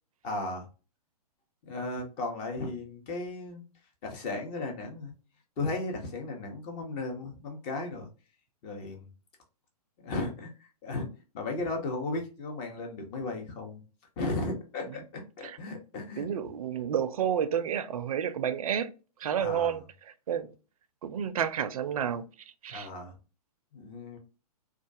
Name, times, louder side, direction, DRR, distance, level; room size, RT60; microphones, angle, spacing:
voice 1, 0.2-0.7 1.6-3.6 4.0-5.1 5.6-8.1 8.6-9.0 10.0-11.1 11.3-13.8 14.2-16.3 19.4-19.7 22.7-23.1 23.7-24.2, left 2 dB, 30° left, 0.8 m, -35 dB
voice 2, 16.2-18.9 19.2-20.5 21.0-22.2 22.6-22.9, right 8 dB, 60° right, 0.4 m, -30 dB
2.3 x 2.3 x 2.6 m
figure-of-eight pair, 120°, 20 cm